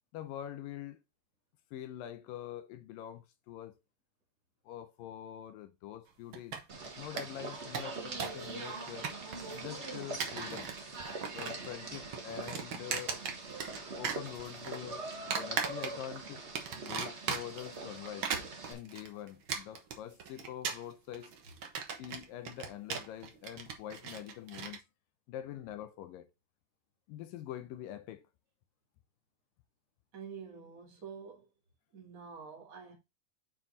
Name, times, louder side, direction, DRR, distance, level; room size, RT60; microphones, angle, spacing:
voice 1, 0.1-1.0 1.7-3.8 4.7-6.6 7.0-9.1 9.5-10.7 11.3-15.1 15.4-16.4 16.8-21.3 22.0-24.8 25.3-26.3 27.1-28.2, left 11 dB, 80° left, 2.4 m, -45 dB
sound 1, 6.3-6.9 7.2-7.3 7.5-8.5 8.7-9.6 10.0-10.8 11.1-11.7 11.9-13.8 14.0-14.8 15.3-16.2 16.5-17.7 18.1-24.8, right 6 dB, 65° right, 1.2 m, -37 dB
sound 2, 6.7-18.7, right 3 dB, 90° right, 0.6 m, -43 dB
voice 2, 30.1-31.5 31.9-32.9, right 6 dB, 30° right, 2.2 m, -47 dB
7.7 x 4.6 x 4.0 m
omnidirectional pair, 4.1 m